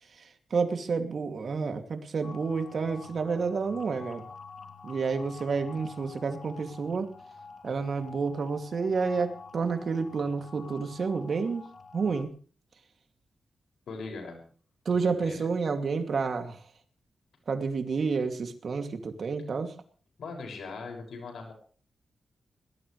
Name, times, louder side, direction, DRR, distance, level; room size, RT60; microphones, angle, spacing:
voice 1, 0.2-4.2 4.8-7.1 7.6-11.6 11.9-12.3 14.8-16.6 17.5-19.7, right 5 dB, 55° right, 6 dB, 2.6 m, -30 dB
sound 1, 2.2-12.2, left 4 dB, 40° left, 2.8 m, -48 dB
voice 2, 13.9-14.4 14.9-15.5 20.2-21.5, left 4 dB, 85° left, 4 dB, 6.4 m, -40 dB
22.0 x 18.5 x 3.3 m, 0.42 s
wide cardioid pair, 110°, 0 cm